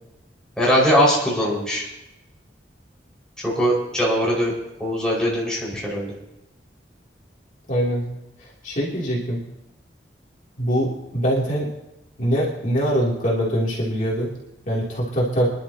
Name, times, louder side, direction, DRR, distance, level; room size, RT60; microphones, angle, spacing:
voice 1, 0.6-1.8 3.4-4.5 4.8-6.1, equal, 5° left, -6 dB, 5.3 m, -21 dB
voice 2, 7.7-8.0 8.6-9.4 10.6-11.7 12.2-14.3 14.6-15.5, equal, 45° left, -5 dB, 3.0 m, -23 dB
26.0 x 11.5 x 2.9 m, 0.94 s
head